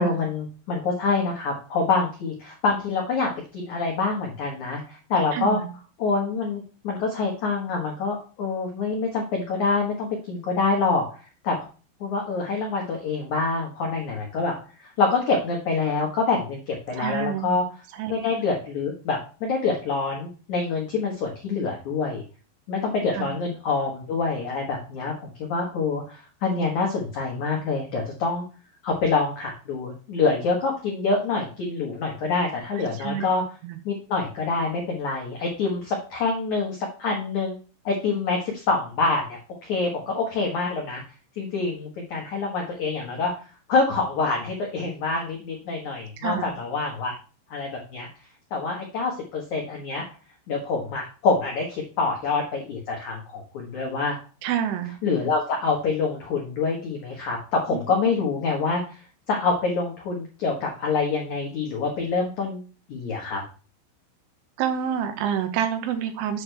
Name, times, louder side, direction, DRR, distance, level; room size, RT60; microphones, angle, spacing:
voice 1, 0.0-5.6 6.0-11.1 11.4-11.6 12.0-14.5 14.8-17.6 18.1-22.2 22.7-28.4 28.8-33.4 33.8-37.6 37.8-41.0 41.4-43.3 43.7-47.1 47.5-48.1 48.5-50.0 50.5-54.2 55.0-58.8 59.3-63.4, left 4 dB, 85° left, 0 dB, 1.6 m, -26 dB
voice 2, 5.3-5.7 17.0-17.6 18.0-18.2 23.1-23.3 33.0-33.3 33.6-33.8 46.2-46.5 54.4-54.9 57.7-57.8 64.6-66.4, right 9 dB, 80° right, 7 dB, 3.5 m, -27 dB
8.4 x 6.4 x 3.4 m, 0.35 s
omnidirectional pair, 5.7 m